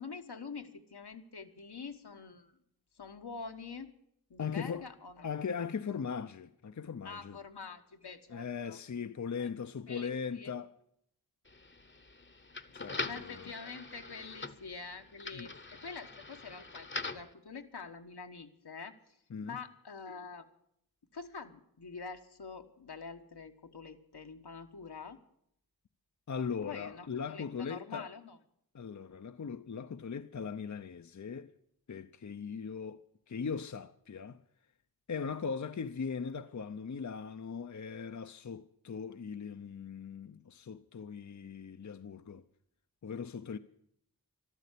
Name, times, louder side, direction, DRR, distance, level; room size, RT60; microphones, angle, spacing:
voice 1, 0.0-2.5 2.9-3.9 4.3-5.3 7.0-8.8 9.4-9.5 9.9-10.6 13.0-19.2 19.4-20.5 21.1-25.2 26.6-28.4, left 5 dB, 80° left, 1.4 m, -46 dB
voice 2, 4.4-4.9 5.2-7.4 8.3-10.7 12.7-13.5 15.3-15.5 19.3-19.6 26.3-28.1 28.7-31.5 31.9-33.0 33.3-34.4 35.1-42.4 43.0-43.6, left 6 dB, 50° left, 0.6 m, -39 dB
sound 1, 11.5-17.3, left 3 dB, 30° left, 0.9 m, -43 dB
13.5 x 12.5 x 8.3 m
wide cardioid pair, 75°, 39 cm